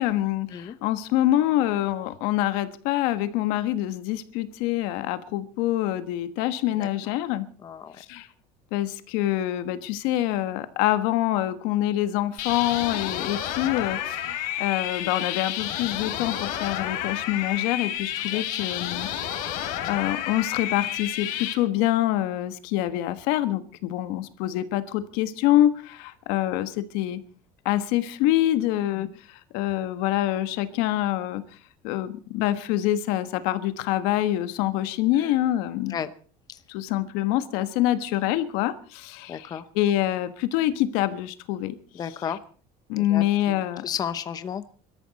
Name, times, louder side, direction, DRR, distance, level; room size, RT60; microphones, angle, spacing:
voice 1, 0.0-7.4 8.0-8.3 8.7-19.1 19.3-27.2 27.6-31.4 31.8-35.9 36.7-39.5 39.7-41.7 42.9-43.8, left 14 dB, 85° left, 11 dB, 1.4 m, -26 dB
voice 2, 7.6-8.0 13.1-13.3 18.3-18.6 29.0-29.2 35.1-35.4 35.9-36.1 36.5-36.6 39.3-39.7 41.9-42.4 43.0-44.6, left 8 dB, 25° left, 12 dB, 0.8 m, -34 dB
sound 1, 12.4-21.5, left 11 dB, 70° left, 3.2 m, -30 dB
23.5 x 13.0 x 4.2 m, 0.41 s
cardioid pair, 165°, 15 cm